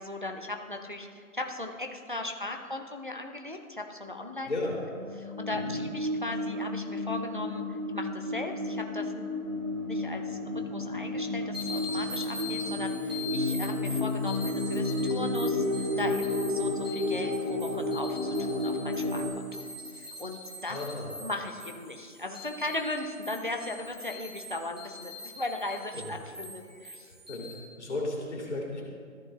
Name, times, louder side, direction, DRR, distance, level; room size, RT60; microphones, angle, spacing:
voice 1, 0.0-4.5 5.2-9.4 9.9-10.4 10.7-19.7 19.9-20.8 21.2-27.1, left 2 dB, 35° right, 4 dB, 0.5 m, -38 dB
sound 1, 5.0-19.3, left 2 dB, 60° right, 2.0 m, -31 dB
sound 2, 11.5-27.5, left 2 dB, 20° right, 1.6 m, -43 dB
voice 2, 20.7-21.1 25.9-26.1 27.1-27.5 27.8-28.8, left 2 dB, 50° left, -3 dB, 2.3 m, -34 dB
13.5 x 6.9 x 2.4 m, 2.1 s
hypercardioid pair, 180°, 43 cm